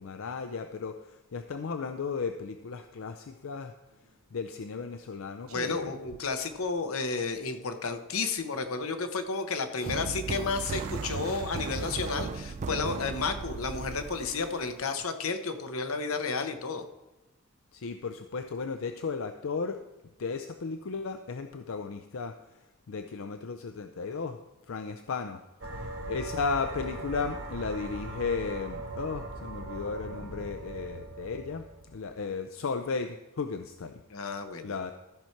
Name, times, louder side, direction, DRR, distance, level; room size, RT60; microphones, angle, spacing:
voice 1, 0.0-3.7 4.3-5.9 9.8-10.0 11.2-11.4 17.7-19.8 20.2-22.3 22.9-24.4 24.7-25.4 25.8-31.6 31.9-34.0 34.6-34.9, left 5 dB, 65° left, 8 dB, 0.5 m, -35 dB
sound 1, 3.9-4.2 5.0-5.1 5.5-7.0 7.3-7.4 8.0-8.4 10.2-12.2, right 6 dB, 85° right, 0.6 m, -48 dB
voice 2, 5.5-16.8 34.1-34.7, left 4 dB, 85° left, 8 dB, 0.9 m, -32 dB
sound 2, 9.9-15.0, right 5 dB, 35° right, 0.3 m, -36 dB
sound 3, 25.6-32.2, right 2 dB, 65° right, 1.1 m, -40 dB
14.0 x 5.8 x 4.5 m, 1.0 s
head